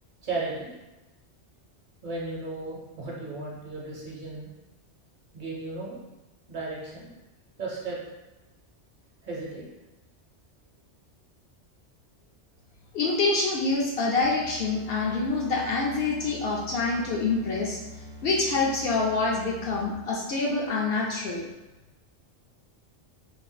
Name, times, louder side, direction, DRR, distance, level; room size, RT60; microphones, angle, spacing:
voice 1, 0.2-0.7 2.0-4.5 5.3-6.0 6.5-7.1 7.6-8.0 9.2-9.7, right 3 dB, 50° right, -4 dB, 0.8 m, -35 dB
voice 2, 12.9-17.8 18.2-21.4, left 3 dB, 65° left, -2 dB, 0.7 m, -26 dB
sound 1, 14.2-20.1, left 1 dB, 80° right, 0.9 m, -44 dB
2.6 x 2.3 x 3.9 m, 1.1 s
omnidirectional pair, 1.2 m